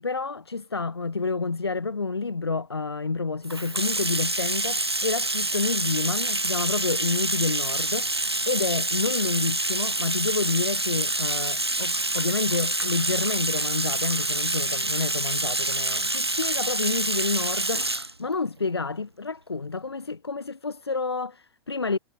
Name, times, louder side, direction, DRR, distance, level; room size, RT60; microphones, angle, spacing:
voice 1, 0.0-22.0, left 4 dB, 80° left, 7.2 m, -29 dB
Bathtub (filling or washing), 3.4-18.1, right 2 dB, 85° right, 1.5 m, -27 dB
figure-of-eight pair, 95°, 13 cm